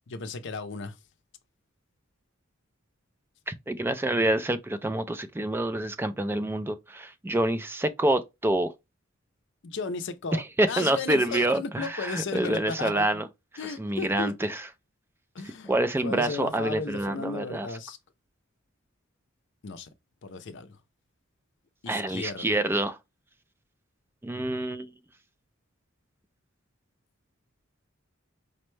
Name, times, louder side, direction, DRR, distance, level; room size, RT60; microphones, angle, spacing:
voice 1, 0.1-1.0 9.6-13.2 13.6-14.3 15.3-15.7 16.0-18.0 19.6-19.9 20.2-20.8 21.8-22.6, left 4 dB, 60° left, 0.5 m, -35 dB
voice 2, 3.5-8.7 10.6-13.3 13.8-14.6 15.7-17.7 21.9-23.0 24.2-24.9, right 1 dB, 10° right, 0.3 m, -27 dB
5.0 x 2.2 x 3.1 m
head